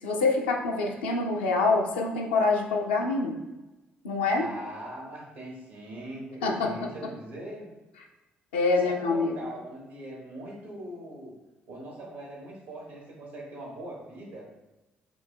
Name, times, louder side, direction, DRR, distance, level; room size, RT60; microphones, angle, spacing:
voice 1, 0.0-3.4 4.0-4.5 6.4-6.7 8.5-9.3, left 3 dB, 80° left, 0 dB, 0.5 m, -25 dB
voice 2, 4.4-7.7 8.8-11.3 11.7-14.5, right 1 dB, 75° right, -3 dB, 1.5 m, -41 dB
7.2 x 3.2 x 2.2 m, 1.1 s
figure-of-eight pair, 40°, 5 cm